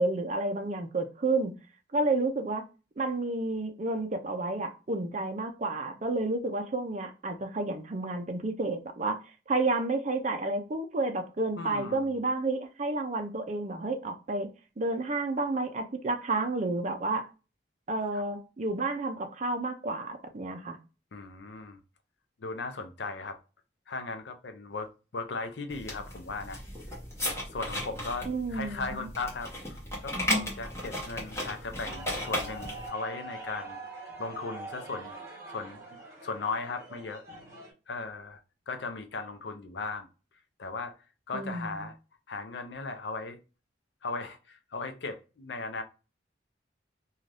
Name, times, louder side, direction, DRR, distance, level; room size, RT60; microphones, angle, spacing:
voice 1, 0.0-1.5 1.9-2.6 3.0-14.5 14.8-17.3 17.9-20.8 28.2-29.1 41.3-41.8, right 2 dB, 40° right, 0.5 m, -30 dB
voice 2, 11.6-12.2 18.1-18.2 21.1-21.8 22.4-23.4 23.9-26.6 27.5-33.8 34.2-35.1 35.5-37.2 37.9-38.4 38.7-40.1 40.6-40.9 41.3-42.0 42.3-43.4 44.0-45.8, left 3 dB, 70° left, 0.5 m, -37 dB
sound 1, 25.7-32.9, left 1 dB, 15° left, 0.9 m, -35 dB
sound 2, 31.8-37.7, right 2 dB, 15° right, 1.0 m, -44 dB
2.6 x 2.3 x 3.2 m
head